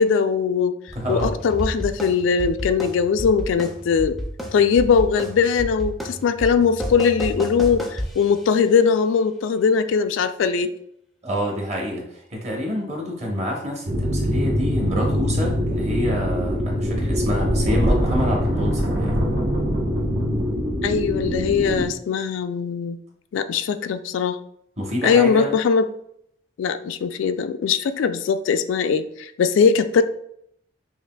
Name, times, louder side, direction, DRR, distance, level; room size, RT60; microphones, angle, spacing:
voice 1, 0.0-0.8 1.1-4.2 4.5-10.7 20.8-23.0 23.3-24.4 25.0-25.9 26.6-30.0, left 6 dB, 85° left, 10 dB, 0.3 m, -20 dB
sound 1, 0.9-8.6, equal, ahead, 0.4 m, -31 dB
voice 2, 0.9-1.3 11.2-19.2 24.8-25.5, equal, 35° right, -1 dB, 0.9 m, -27 dB
sound 2, 13.9-21.8, equal, 80° right, 1.1 m, -23 dB
5.7 x 2.4 x 2.2 m, 0.72 s
head